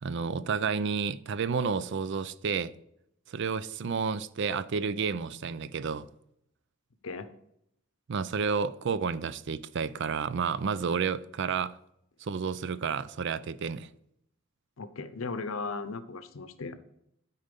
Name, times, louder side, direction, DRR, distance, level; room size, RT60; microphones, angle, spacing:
voice 1, 0.0-2.7 3.3-6.1 8.1-11.8 12.2-13.9, right 5 dB, 60° right, 0.4 m, -31 dB
voice 2, 14.8-16.8, left 4 dB, 85° left, 0.7 m, -37 dB
12.5 x 4.3 x 5.2 m
head